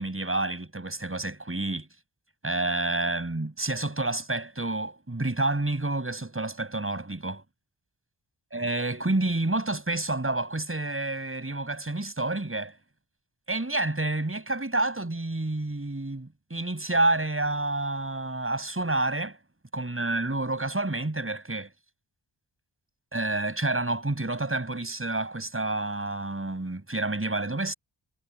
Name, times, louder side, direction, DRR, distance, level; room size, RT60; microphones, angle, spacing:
voice 1, 0.0-1.9 2.4-7.4 8.5-12.8 13.5-19.4 19.7-21.7 23.1-27.7, right 2 dB, 30° right, 6.4 m, -29 dB
cardioid pair, 55°, 46 cm